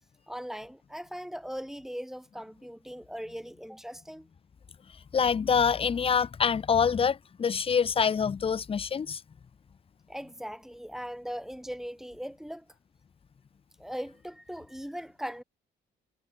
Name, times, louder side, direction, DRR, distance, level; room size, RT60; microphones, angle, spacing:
voice 1, 0.3-4.3 10.1-12.7 13.8-15.4, equal, ahead, 1.9 m, -39 dB
voice 2, 5.1-9.2, left 6 dB, 30° left, 0.5 m, -26 dB
cardioid pair, 90°, 20 cm